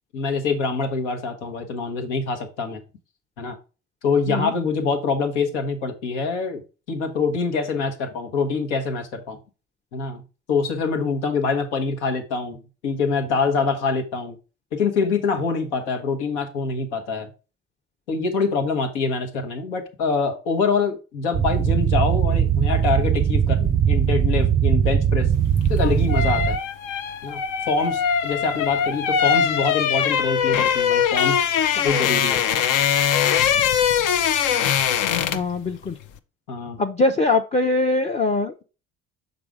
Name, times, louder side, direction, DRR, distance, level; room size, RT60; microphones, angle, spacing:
voice 1, 0.1-2.8 3.4-3.6 4.0-6.6 6.9-9.4 9.9-10.2 10.5-14.4 14.7-17.3 18.1-25.3 25.7-26.6 27.2-31.4 31.7-32.4 36.5-36.8, left 4 dB, 85° left, 5 dB, 1.1 m, -25 dB
sound 1, 21.3-26.6, right 8 dB, 25° right, 0.5 m, -20 dB
sound 2, 25.6-35.6 35.8-36.0, left 8 dB, 60° left, 0.7 m, -22 dB
voice 2, 35.3-35.9 36.8-38.6, left 2 dB, 20° left, 7 dB, 0.6 m, -22 dB
6.0 x 4.0 x 4.8 m, 0.33 s
hypercardioid pair, 60°, 34 cm